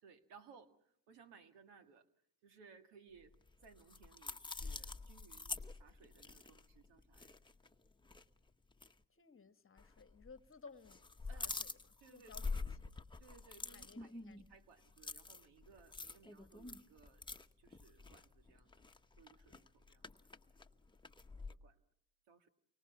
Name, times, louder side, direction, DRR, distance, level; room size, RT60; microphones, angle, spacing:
voice 1, 0.0-2.1 2.4-3.3 3.6-7.4 11.3-11.5 12.0-12.7 13.2-17.2 17.6-18.7 19.2-20.0 21.3-21.8 22.3-22.5, right 6 dB, 85° right, 1.9 m, -63 dB
sound 1, 3.3-7.7 8.0-8.2 8.7-8.9 9.8-10.4 10.7-21.5, left 3 dB, 10° left, 1.0 m, -47 dB
voice 2, 9.1-12.9 13.7-14.4, left 5 dB, 30° left, 1.2 m, -59 dB
30.0 x 24.5 x 5.9 m
supercardioid pair, 65°, 41 cm